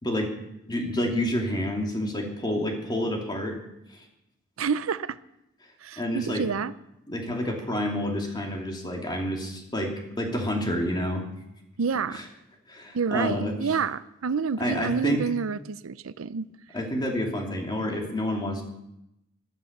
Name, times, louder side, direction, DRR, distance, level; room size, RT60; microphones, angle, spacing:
voice 1, 0.7-3.6 6.0-6.5 7.1-11.2 12.1-12.2 12.7-13.6 14.6-15.2 16.7-18.6, left 1 dB, 20° left, 1 dB, 2.7 m, -28 dB
voice 2, 4.6-5.2 5.8-6.7 11.8-12.2 12.9-16.5, right 5 dB, 85° right, 15 dB, 0.6 m, -28 dB
13.5 x 12.5 x 6.7 m, 0.85 s
head